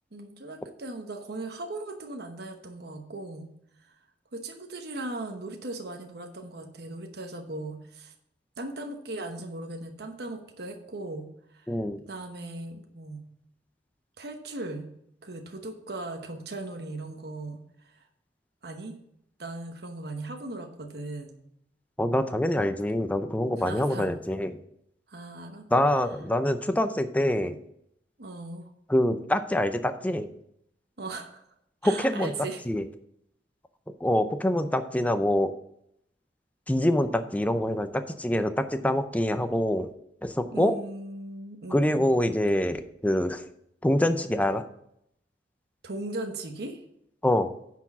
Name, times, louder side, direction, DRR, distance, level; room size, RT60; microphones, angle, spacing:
voice 1, 0.1-3.5 3.8-4.0 4.3-8.1 8.6-11.7 12.1-13.2 14.2-14.9 15.2-18.1 18.6-19.0 19.4-21.3 23.6-24.1 25.1-25.7 28.2-28.6 31.0-31.4 31.8-32.6 40.5-42.1 45.8-46.8, right 2 dB, 65° right, 4 dB, 1.0 m, -38 dB
voice 2, 11.7-12.0 22.0-24.5 25.7-27.6 28.9-30.3 31.8-32.3 32.7-32.8 34.0-35.5 36.7-39.9 40.2-40.8 41.7-43.4 43.8-44.6 47.2-47.5, left 1 dB, 10° left, 8 dB, 0.5 m, -25 dB
9.6 x 4.6 x 6.0 m, 0.74 s
head